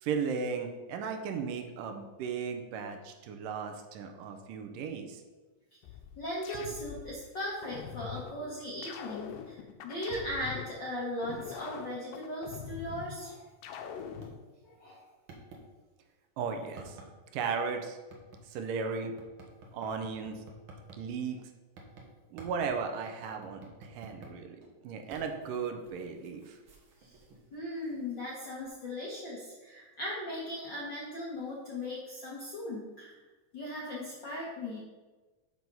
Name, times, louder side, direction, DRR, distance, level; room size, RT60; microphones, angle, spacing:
voice 1, 0.0-5.2 16.4-17.0 17.3-18.0 18.5-19.1 19.7-20.4 21.0-21.4 22.3-24.6 24.8-26.6, right 5 dB, 80° right, 5 dB, 2.3 m, -36 dB
Brain Beep, 5.8-7.1 7.6-8.3 8.8-10.7 11.2-13.1 13.6-14.3, left 8 dB, 80° left, 2.3 m, -43 dB
voice 2, 6.2-9.6 9.8-13.4 14.6-15.0 27.0-27.2 27.5-33.2 33.5-34.8, left 1 dB, 60° left, -5 dB, 1.2 m, -38 dB
sound 1, 14.0-14.3 14.8-14.9 15.3-15.6 16.8-17.1 18.1-18.4 19.2-21.0 21.8-22.1 22.4-22.7 23.2-24.4 24.6-28.3 28.6-28.7, right 3 dB, 55° right, 1.5 m, -51 dB
6.5 x 6.1 x 5.4 m, 1.3 s
omnidirectional pair, 3.9 m